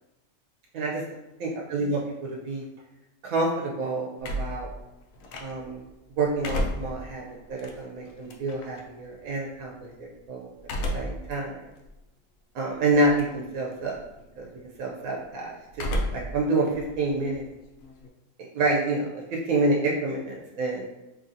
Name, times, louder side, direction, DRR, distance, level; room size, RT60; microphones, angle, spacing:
voice 1, 1.4-2.6 3.2-4.7 5.4-5.8 6.2-7.2 7.5-9.7 10.0-10.5 10.9-11.6 12.5-14.0 14.4-14.5 14.8-17.5 18.5-20.8, right 2 dB, 85° right, -2 dB, 1.0 m, -28 dB
sound 1, 4.2-5.8 6.2-8.8 10.6-11.3 11.8-11.9 12.9-13.4 13.7-14.2 15.7-16.4 16.7-18.1, equal, 85° left, 1.0 m, -32 dB
3.7 x 3.0 x 2.7 m, 0.99 s
omnidirectional pair, 1.4 m